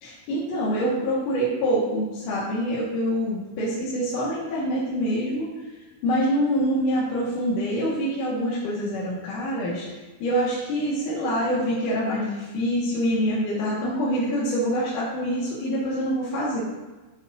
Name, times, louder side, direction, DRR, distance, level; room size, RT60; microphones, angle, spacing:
voice 1, 0.0-5.5 6.0-16.6, equal, 60° left, -7 dB, 2.7 m, -25 dB
12.0 x 8.2 x 2.6 m, 1.2 s
omnidirectional pair, 4.8 m